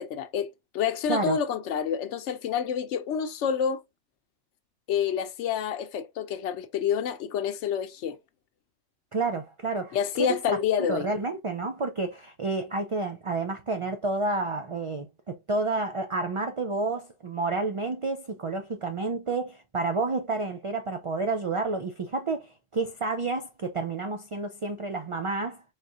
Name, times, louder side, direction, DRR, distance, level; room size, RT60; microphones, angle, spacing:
voice 1, 0.0-3.8 4.9-8.2 9.9-11.1, left 8 dB, 90° left, 0.9 m, -28 dB
voice 2, 9.1-10.4 10.9-25.6, right 3 dB, 50° right, 0.4 m, -30 dB
4.1 x 3.6 x 2.4 m
omnidirectional pair, 1.2 m